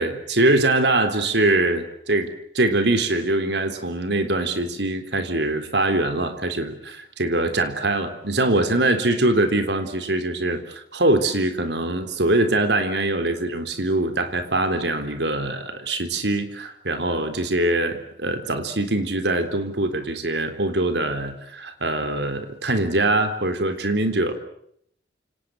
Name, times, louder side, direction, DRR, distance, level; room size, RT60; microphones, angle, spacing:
voice 1, 0.0-24.3, right 2 dB, 75° right, 8 dB, 3.8 m, -23 dB
29.0 x 27.5 x 6.5 m, 0.70 s
head